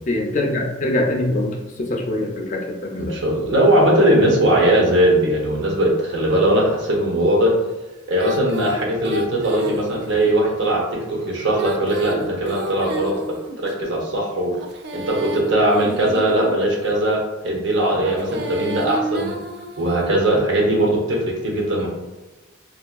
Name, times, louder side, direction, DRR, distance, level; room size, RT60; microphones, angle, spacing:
voice 1, 0.1-3.1, left 1 dB, 40° left, 1 dB, 0.4 m, -23 dB
voice 2, 3.0-7.5 8.1-13.2 13.6-14.5 14.9-19.4 19.8-21.9, right 1 dB, 70° right, -1 dB, 0.7 m, -19 dB
Female singing, 8.2-10.3 11.4-13.7 14.5-16.7 17.9-20.2, right 2 dB, 55° right, 0.3 m, -31 dB
3.4 x 2.3 x 2.2 m, 1.1 s
head